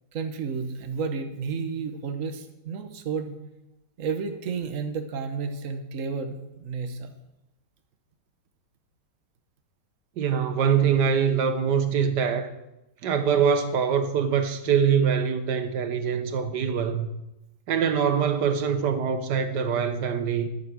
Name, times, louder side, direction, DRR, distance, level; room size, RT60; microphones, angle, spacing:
voice 1, 0.1-3.3 4.0-7.1, right 5 dB, 50° right, 1.4 m, -31 dB
voice 2, 10.2-12.5 13.0-17.1 17.7-20.5, right 7 dB, 75° right, 1.7 m, -24 dB
13.0 x 8.0 x 6.3 m
omnidirectional pair, 1.9 m